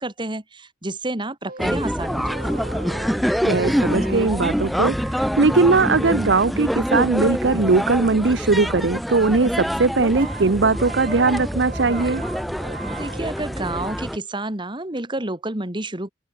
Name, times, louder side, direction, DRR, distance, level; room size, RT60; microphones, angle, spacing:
voice 1, 0.0-2.7 12.9-16.1, right 2 dB, 25° right, 2.4 m, -30 dB
sound 1, 1.5-6.8 10.2-14.1, right 3 dB, 55° right, 7.5 m, -40 dB
sound 2, 1.6-14.2, equal, ahead, 1.7 m, -25 dB
voice 2, 3.4-12.2, right 3 dB, 90° right, 0.8 m, -19 dB
open air
head